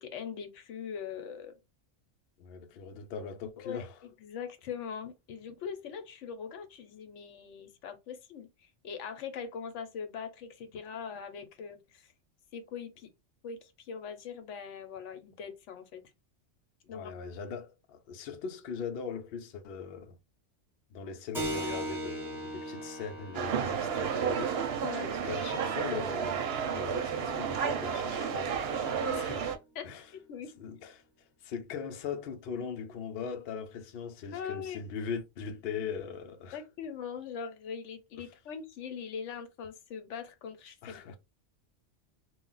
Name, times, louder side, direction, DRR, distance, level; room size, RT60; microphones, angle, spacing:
voice 1, 0.0-1.6 3.6-12.1 12.5-13.1 13.4-16.0 16.9-17.1 24.8-25.1 29.0-29.3 29.7-30.5 34.3-34.8 36.5-41.0, left 7 dB, 80° left, 0.9 m, -41 dB
voice 2, 2.4-4.0 16.8-20.2 20.9-24.9 25.1-29.5 29.8-30.1 30.6-31.0 31.4-36.6 38.2-38.3 40.8-41.2, left 6 dB, 65° left, 0.7 m, -40 dB
Keyboard (musical), 21.3-29.6, right 1 dB, ahead, 0.9 m, -42 dB
sound 1, 23.3-29.6, right 7 dB, 65° right, 0.7 m, -32 dB
2.3 x 2.0 x 3.8 m
omnidirectional pair, 1.2 m